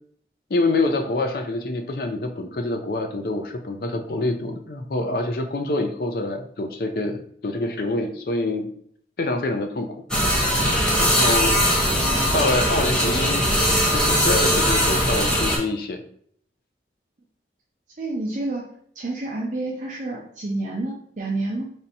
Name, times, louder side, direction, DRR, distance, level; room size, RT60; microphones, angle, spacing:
voice 1, 0.5-8.7 9.2-10.0 11.0-13.4 13.9-16.0, left 2 dB, 55° left, 5 dB, 0.5 m, -26 dB
sound 1, 10.1-15.6, equal, 5° left, 0.7 m, -20 dB
voice 2, 18.0-18.7 18.9-21.7, right 2 dB, 45° right, -2 dB, 0.5 m, -29 dB
3.3 x 2.7 x 4.1 m, 0.64 s
head